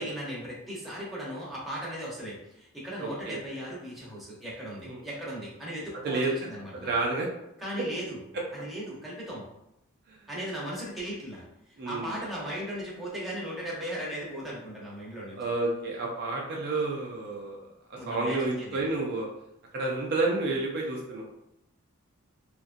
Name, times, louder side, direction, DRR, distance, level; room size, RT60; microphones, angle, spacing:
voice 1, 0.0-6.9 7.6-8.2 8.5-9.5 10.3-15.4 17.9-18.8, equal, ahead, -7 dB, 0.8 m, -37 dB
voice 2, 3.0-3.4 4.8-5.0 6.0-6.3 6.7-7.3 10.1-10.2 11.8-12.2 15.3-17.6 17.9-19.3 19.7-21.3, right 2 dB, 45° right, -2 dB, 0.4 m, -30 dB
2.8 x 2.4 x 2.5 m, 0.84 s
head